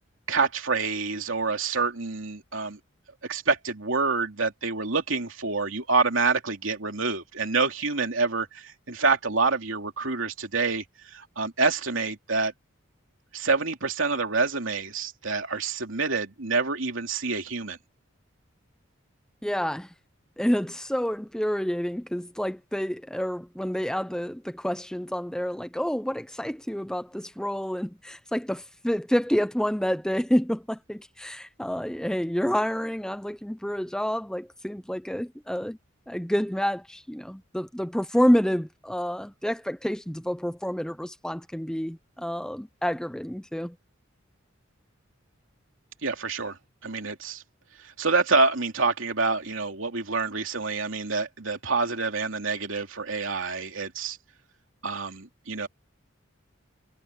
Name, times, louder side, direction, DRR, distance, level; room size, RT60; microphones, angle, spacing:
voice 1, 0.3-2.8 3.2-12.5 13.3-17.8 46.0-46.6 46.8-47.4 47.8-54.2 54.8-55.7, right 4 dB, 75° right, 2.9 m, -27 dB
voice 2, 19.4-19.9 20.4-35.8 36.1-43.8, equal, 5° left, 0.7 m, -28 dB
head